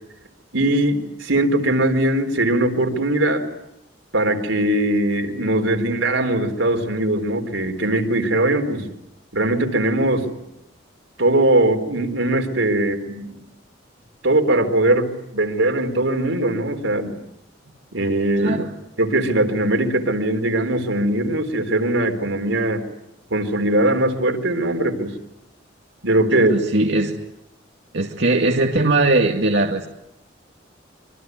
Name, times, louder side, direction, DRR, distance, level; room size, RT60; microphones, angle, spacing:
voice 1, 0.5-3.4 4.1-8.9 9.3-10.3 11.2-13.4 14.2-17.2 17.9-18.6 19.0-22.8 23.3-25.1 26.0-26.5, right 1 dB, 90° right, 6 dB, 4.0 m, -20 dB
voice 2, 18.4-18.7 26.4-27.2 27.9-29.9, right 2 dB, 65° right, 1 dB, 2.2 m, -20 dB
26.0 x 24.5 x 9.4 m, 0.84 s
head